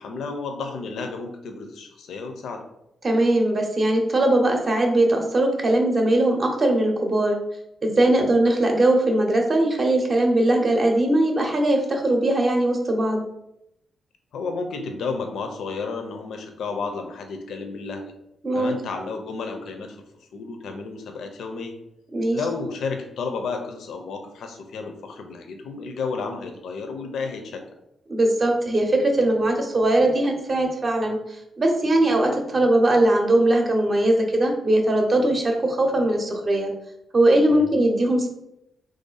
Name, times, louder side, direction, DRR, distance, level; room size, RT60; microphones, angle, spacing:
voice 1, 0.0-2.6 8.1-8.3 14.3-18.1 18.5-20.0 20.3-21.8 22.3-27.6 37.5-37.7, left 4 dB, 80° left, 4 dB, 0.5 m, -32 dB
voice 2, 3.0-7.4 7.8-13.2 18.4-18.7 22.1-22.4 28.1-31.2 31.6-36.7 37.1-38.3, right 1 dB, 30° right, 2 dB, 0.6 m, -20 dB
3.1 x 2.6 x 3.9 m, 0.82 s
wide cardioid pair, 135°, 0 cm